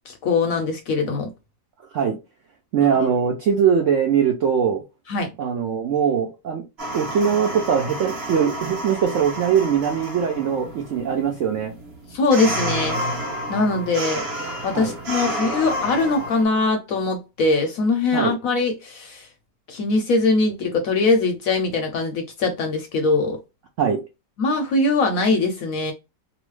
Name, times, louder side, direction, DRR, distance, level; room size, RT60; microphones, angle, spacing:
voice 1, 0.1-1.3 5.1-5.3 12.1-13.0 13.5-14.2 14.6-19.3 19.7-23.4 24.4-25.9, left 3 dB, 70° left, 0.9 m, -21 dB
voice 2, 2.7-4.8 5.4-6.7 6.9-11.7 14.7-14.9 18.1-18.3 23.8-24.0, right 7 dB, 70° right, 0.7 m, -21 dB
sound 1, 6.8-16.4, right 1 dB, 45° right, 1.0 m, -30 dB
3.0 x 2.0 x 3.1 m
omnidirectional pair, 1.9 m